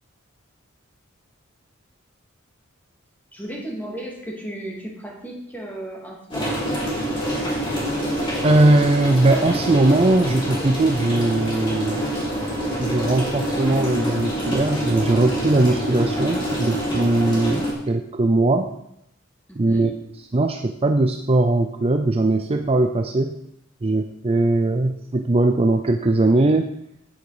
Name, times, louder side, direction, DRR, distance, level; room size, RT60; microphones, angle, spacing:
voice 1, 3.3-6.6 19.5-20.0, right 1 dB, 10° left, -2 dB, 2.5 m, -34 dB
sound 1, 6.3-17.7, equal, 25° left, 3.7 m, -26 dB
voice 2, 8.4-12.1 12.8-18.7 19.6-19.9 20.3-23.4 23.8-26.7, right 2 dB, 30° right, 6 dB, 0.5 m, -20 dB
9.4 x 9.1 x 4.9 m, 0.78 s
head